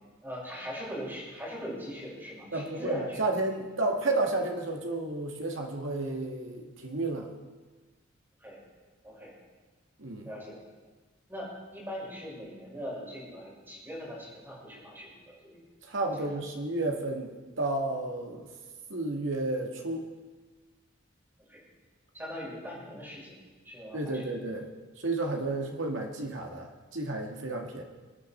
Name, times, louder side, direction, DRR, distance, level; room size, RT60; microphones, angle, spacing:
voice 1, 0.2-3.2 8.4-8.6 9.0-9.3 10.2-10.6 11.3-15.6 16.2-16.3 21.5-21.6 22.1-23.4 23.6-24.2 25.4-25.5, equal, 10° right, -6 dB, 5.8 m, -41 dB
voice 2, 2.5-7.3 10.0-10.3 15.9-17.3 17.6-18.5 18.9-20.1 23.9-24.7 25.0-27.8, right 2 dB, 80° right, 2 dB, 2.0 m, -31 dB
23.5 x 9.4 x 4.4 m, 1.3 s
head